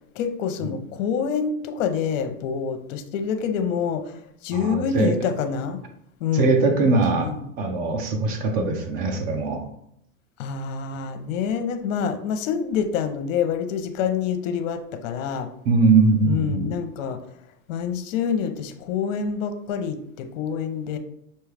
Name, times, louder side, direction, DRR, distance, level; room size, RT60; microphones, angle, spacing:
voice 1, 0.2-5.8 6.2-6.5 7.1-7.5 10.4-15.5 16.2-17.2 17.7-21.0, left 7 dB, 65° left, 7 dB, 0.7 m, -27 dB
voice 2, 4.5-5.1 6.3-7.3 7.6-9.7 15.6-16.7, right 3 dB, 20° right, 5 dB, 0.4 m, -21 dB
5.4 x 2.2 x 3.3 m, 0.75 s
supercardioid pair, 135°, 42 cm